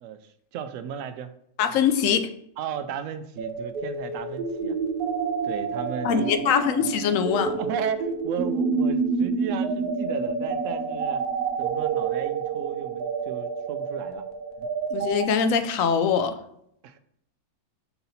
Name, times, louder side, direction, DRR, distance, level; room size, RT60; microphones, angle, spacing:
voice 1, 0.0-1.3 2.6-4.8 5.4-6.6 7.4-11.2 11.6-14.2 14.6-14.7 16.8-17.0, right 7 dB, 70° right, 10 dB, 0.9 m, -35 dB
voice 2, 1.6-2.3 6.0-7.6 14.9-16.4, left 7 dB, 70° left, 10 dB, 0.9 m, -23 dB
sound 1, 3.4-15.2, right 5 dB, 85° right, 1.2 m, -28 dB
5.8 x 4.0 x 4.1 m, 0.73 s
omnidirectional pair, 1.5 m